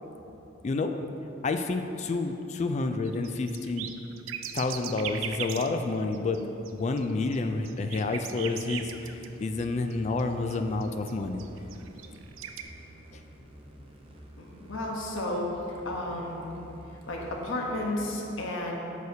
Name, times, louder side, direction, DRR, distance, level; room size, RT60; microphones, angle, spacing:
voice 1, 0.6-0.9 1.4-3.9 4.5-6.4 6.7-11.4, left 3 dB, 35° left, 6 dB, 0.3 m, -29 dB
sound 1, 3.1-5.8 6.1-6.4 6.7-9.7 9.9-11.1 11.4-12.6, right 9 dB, 85° right, 0.4 m, -39 dB
sound 2, 8.8-18.2, equal, 30° right, 0.7 m, -50 dB
voice 2, 14.4-15.6 15.9-16.4 16.9-18.8, left 1 dB, 80° left, -1 dB, 1.0 m, -32 dB
9.0 x 6.5 x 2.8 m, 3.0 s
head